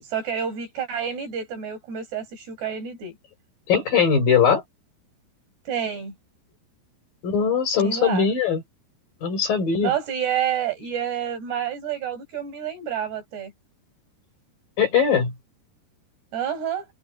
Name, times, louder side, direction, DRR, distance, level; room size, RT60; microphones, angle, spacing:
voice 1, 0.0-3.2 5.7-6.1 7.8-8.3 9.8-13.5 16.3-16.9, right 8 dB, 65° right, 8.3 m, -29 dB
voice 2, 3.7-4.6 7.2-8.6 9.2-9.9 14.8-15.3, left 6 dB, 50° left, 7.5 m, -20 dB
omnidirectional pair, 5.2 m